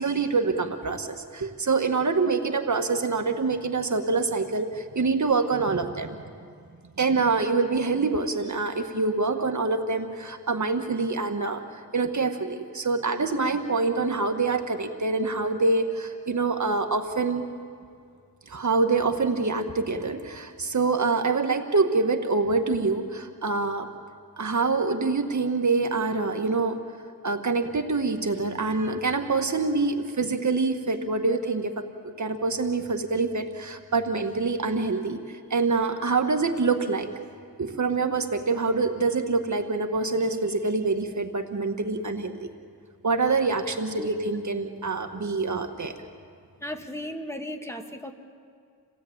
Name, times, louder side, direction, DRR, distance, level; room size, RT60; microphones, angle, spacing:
voice 1, 0.0-6.2 7.0-17.5 18.5-23.9 24.4-26.8 27.2-31.8 32.2-37.1 37.6-42.5 43.0-45.9, right 4 dB, 50° right, 5 dB, 1.7 m, -26 dB
voice 2, 46.6-48.1, left 1 dB, 5° left, 4 dB, 2.0 m, -35 dB
28.5 x 17.0 x 8.8 m, 2.2 s
cardioid pair, 65°, 36 cm